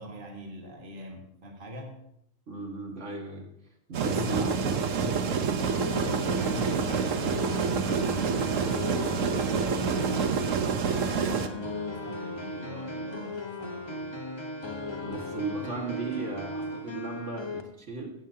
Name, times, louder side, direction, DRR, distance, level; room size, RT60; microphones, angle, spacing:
voice 1, 0.0-2.0 4.1-8.7 9.1-14.1, equal, 40° right, 1 dB, 1.9 m, -41 dB
voice 2, 2.5-3.5 3.9-4.8 15.0-18.1, right 3 dB, 70° right, 1 dB, 2.2 m, -36 dB
sound 1, 3.9-11.5, right 6 dB, 85° right, 1.3 m, -28 dB
sound 2, 5.6-17.6, left 1 dB, 25° left, 1.1 m, -37 dB
16.0 x 15.0 x 2.8 m, 0.77 s
omnidirectional pair, 1.3 m